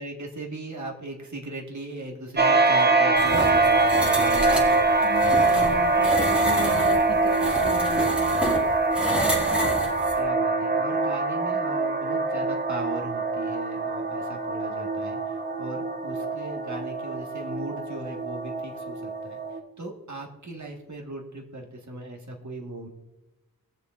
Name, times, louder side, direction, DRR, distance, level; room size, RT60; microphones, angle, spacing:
voice 1, 0.0-4.9 10.2-22.9, right 2 dB, 50° right, 1 dB, 1.7 m, -38 dB
sound 1, 2.4-19.6, right 3 dB, 30° right, 1.0 m, -24 dB
sound 2, 3.2-10.2, equal, 5° right, 2.3 m, -30 dB
voice 2, 5.0-8.3, left 5 dB, 60° left, 7 dB, 1.1 m, -37 dB
20.5 x 7.1 x 2.5 m, 1.0 s
wide cardioid pair, 75°, 36 cm